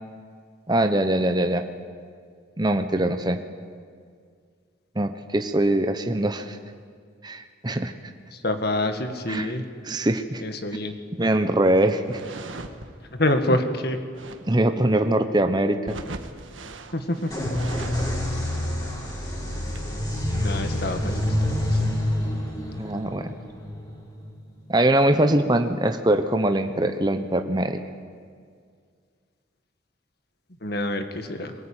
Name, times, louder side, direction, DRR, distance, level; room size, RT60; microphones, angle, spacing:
voice 1, 0.7-1.6 2.6-3.4 5.0-6.6 7.2-7.9 9.3-9.5 9.8-10.4 11.2-12.2 14.5-16.0 22.8-23.3 24.7-27.8, right 1 dB, 20° right, 7 dB, 0.9 m, -22 dB
voice 2, 8.3-9.6 10.4-10.9 13.1-14.0 16.9-17.5 20.4-21.2 21.7-21.8 30.6-31.5, left 1 dB, 55° left, 7 dB, 1.8 m, -26 dB
sound 1, 12.0-12.9 14.1-14.5 15.8-18.3 18.6-18.7 18.9-19.0 19.5-19.9 21.0-21.4 21.9-22.0 22.2-22.7, right 2 dB, 90° right, 1.7 m, -40 dB
sound 2, 17.3-24.9, left 1 dB, 20° left, 4.6 m, -27 dB
22.5 x 19.0 x 9.0 m, 2.1 s
head